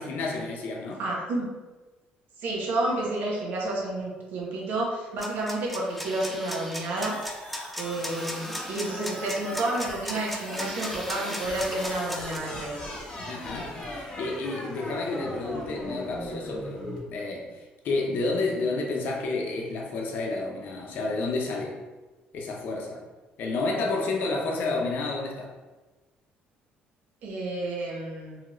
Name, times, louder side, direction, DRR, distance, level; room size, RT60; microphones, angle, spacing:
voice 1, 0.0-1.0 13.3-21.8 22.3-23.0 23.4-25.5, left 3 dB, 60° left, 0 dB, 0.6 m, -30 dB
voice 2, 1.0-1.5 2.4-7.5 7.8-12.9 27.2-28.4, right 2 dB, 70° right, -3 dB, 0.7 m, -30 dB
sound 1, 5.2-12.4, equal, ahead, 0.3 m, -37 dB
sound 2, 7.0-17.0, left 1 dB, 25° left, 0.8 m, -38 dB
2.8 x 2.4 x 3.0 m, 1.2 s
cardioid pair, 130°, 3 cm